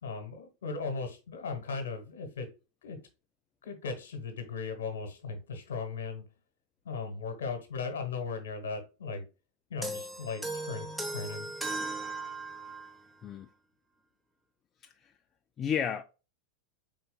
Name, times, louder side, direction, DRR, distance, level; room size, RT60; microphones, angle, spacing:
voice 1, 0.0-2.5 2.8-3.0 3.6-6.2 6.8-9.3 9.7-11.5, left 4 dB, 70° left, 1.2 m, -37 dB
sound 1, 9.8-13.0, right 2 dB, 5° right, 0.8 m, -37 dB
voice 2, 15.6-16.0, left 7 dB, 30° left, 0.3 m, -32 dB
4.3 x 3.9 x 2.2 m
figure-of-eight pair, 90°, 0 cm